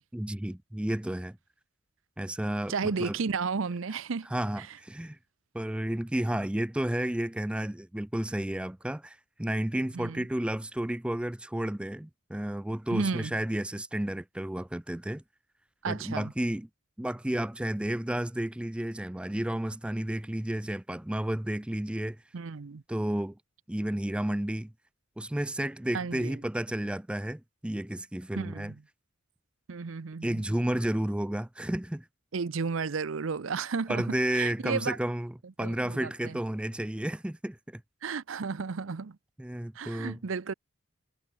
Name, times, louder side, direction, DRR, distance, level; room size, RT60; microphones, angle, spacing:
voice 1, 0.1-1.4 2.2-3.1 4.3-5.2 5.5-15.2 15.9-16.7 17.0-22.2 22.9-23.4 23.7-24.7 25.2-28.7 30.2-32.1 33.9-37.8 39.4-40.2, right 1 dB, 5° right, 0.4 m, -32 dB
voice 2, 2.7-4.3 9.9-10.3 12.9-13.3 15.8-16.3 22.3-22.8 25.9-26.3 28.4-28.7 29.7-30.4 32.3-35.0 35.6-36.4 38.0-39.2 39.8-40.5, right 5 dB, 75° right, 0.6 m, -33 dB
head